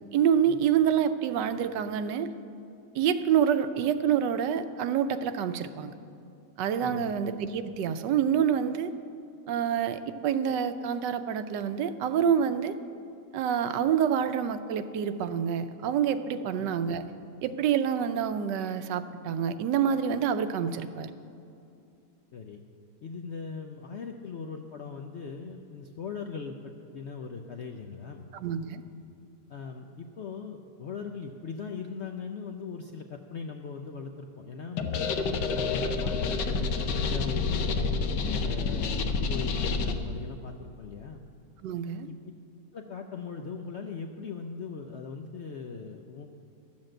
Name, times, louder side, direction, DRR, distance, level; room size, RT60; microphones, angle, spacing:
voice 1, 0.1-2.3 2.9-5.9 6.6-8.9 9.5-12.8 13.3-17.1 17.4-21.1 28.3-28.8 41.6-42.1, right 8 dB, 85° right, 11 dB, 1.3 m, -27 dB
voice 2, 6.8-7.2 16.4-16.7 22.3-22.6 23.0-28.3 29.5-34.9 35.5-38.0 38.4-41.2 42.0-42.2 42.7-46.3, left 5 dB, 70° left, 4 dB, 0.6 m, -40 dB
sound 1, 34.8-40.0, left 4 dB, 85° left, 1.5 m, -28 dB
12.5 x 7.3 x 7.6 m, 2.6 s
omnidirectional pair, 1.8 m